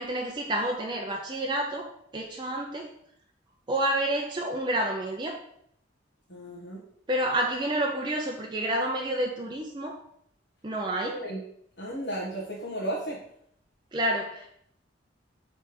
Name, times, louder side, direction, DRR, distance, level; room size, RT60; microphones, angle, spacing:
voice 1, 0.0-1.9 2.1-2.9 3.7-5.4 7.1-10.0 10.6-11.2 13.9-14.5, right 1 dB, 25° right, 1 dB, 0.5 m, -29 dB
voice 2, 6.3-6.8 11.0-11.4 11.8-13.2, right 1 dB, 65° left, -6 dB, 1.2 m, -34 dB
6.7 x 3.3 x 4.6 m, 0.70 s
head